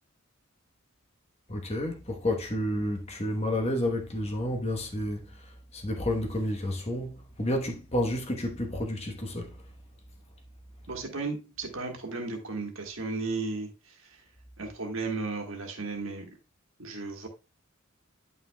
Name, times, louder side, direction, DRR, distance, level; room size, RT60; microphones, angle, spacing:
voice 1, 1.5-5.3 5.7-9.5, left 1 dB, 30° left, 1.1 m, -30 dB
voice 2, 10.9-14.2 14.6-16.3 16.8-17.3, right 3 dB, 70° right, 1.5 m, -35 dB
9.3 x 5.8 x 2.2 m
head